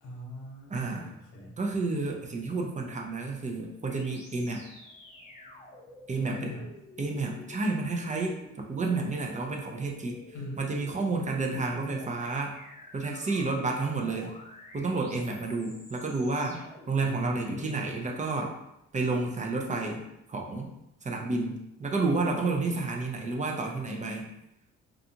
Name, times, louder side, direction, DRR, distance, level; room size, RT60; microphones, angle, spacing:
voice 1, 0.0-1.6 6.3-6.7 10.3-10.6 11.5-11.8 17.0-18.0, equal, 85° left, -2 dB, 0.9 m, -40 dB
voice 2, 0.7-1.1 1.6-4.6 6.1-6.5 7.0-10.2 10.6-12.6 12.9-14.3 14.7-16.6 16.9-18.5 18.9-20.0 20.3-20.7 21.0-24.3, right 3 dB, 25° right, 1 dB, 0.4 m, -30 dB
sound 1, 3.9-18.2, left 1 dB, 20° left, 0.8 m, -50 dB
2.5 x 2.4 x 2.7 m, 0.84 s
cardioid pair, 90°, 30 cm